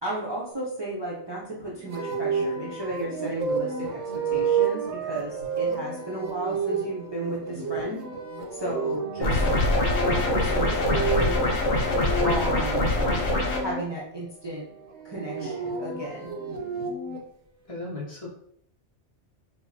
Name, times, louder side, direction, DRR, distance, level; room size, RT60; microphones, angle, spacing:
voice 1, 0.0-4.0 4.3-8.0 8.5-9.4 10.0-11.4 12.2-12.9 13.6-14.6 15.0-16.3, right 1 dB, 30° right, -5 dB, 0.5 m, -33 dB
sound 1, 1.9-13.8 15.0-17.2, right 5 dB, 80° right, 1.0 m, -31 dB
sound 2, 9.2-13.6, left 1 dB, 75° left, 1.1 m, -24 dB
voice 2, 17.7-18.3, left 2 dB, 35° left, -4 dB, 0.8 m, -35 dB
4.9 x 2.2 x 2.6 m, 0.70 s
omnidirectional pair, 1.2 m